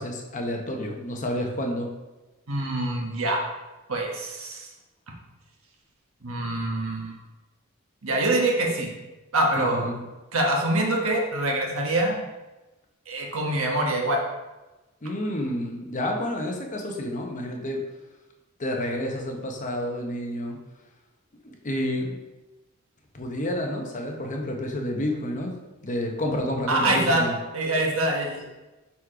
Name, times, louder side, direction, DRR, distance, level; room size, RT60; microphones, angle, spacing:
voice 1, 0.0-1.9 9.6-10.1 15.0-17.8 18.6-20.6 21.4-22.2 23.1-25.6 25.8-27.3, left 1 dB, 40° left, 2 dB, 0.9 m, -29 dB
voice 2, 2.5-3.4 3.9-4.7 6.2-7.1 8.0-8.9 9.3-9.8 10.3-12.2 13.1-14.2 26.7-27.2 27.5-28.5, right 1 dB, 90° right, 0 dB, 1.2 m, -25 dB
4.8 x 4.2 x 4.8 m, 1.1 s
head